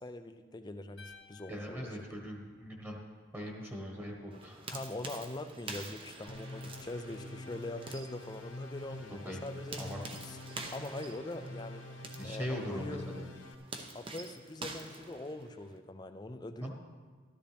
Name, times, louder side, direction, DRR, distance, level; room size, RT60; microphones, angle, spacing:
voice 1, 0.0-2.2 4.7-9.8 10.2-10.4 10.7-11.8 12.2-13.0 13.9-16.7, left 2 dB, 20° left, 8 dB, 0.5 m, -43 dB
sound 1, 1.0-3.2, left 4 dB, 85° left, 1.5 m, -57 dB
voice 2, 1.5-3.0 3.3-4.7 9.2-10.0 12.2-13.3 16.6-16.7, equal, 10° right, 0 dB, 1.4 m, -41 dB
sound 2, 4.3-15.8, right 3 dB, 25° right, 0.8 m, -48 dB
sound 3, 6.3-13.5, left 2 dB, 70° left, 1.0 m, -46 dB
13.0 x 13.0 x 3.4 m, 1.5 s
head